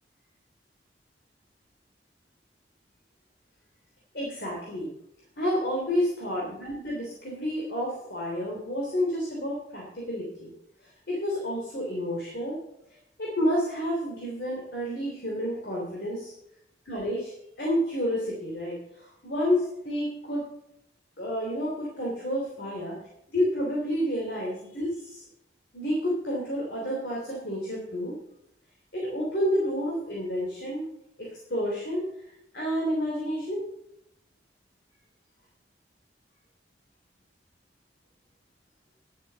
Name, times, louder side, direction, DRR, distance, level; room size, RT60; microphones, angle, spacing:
voice 1, 4.1-4.9 5.4-10.5 10.8-12.6 13.2-16.3 16.8-17.3 17.6-20.4 21.2-23.0 23.3-25.2 25.7-28.1 28.9-30.8 31.2-32.0 32.5-33.6, equal, 65° left, -3 dB, 3.1 m, -30 dB
11.5 x 7.5 x 6.8 m, 0.80 s
head